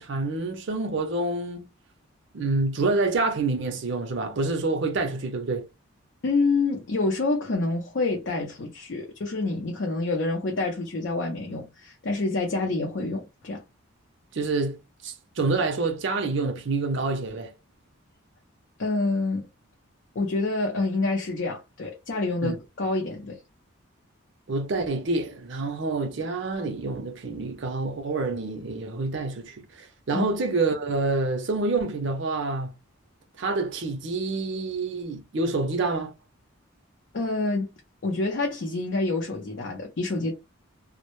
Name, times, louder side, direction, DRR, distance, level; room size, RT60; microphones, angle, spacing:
voice 1, 0.0-1.7 2.3-5.7 14.3-14.8 15.0-17.5 22.4-22.6 24.5-32.7 33.4-36.1, right 3 dB, 55° right, 0.5 m, -27 dB
voice 2, 6.2-13.6 18.8-19.5 20.2-23.4 30.1-30.3 37.1-37.7 38.0-40.3, left 3 dB, 55° left, 0.5 m, -27 dB
2.1 x 2.0 x 2.9 m
head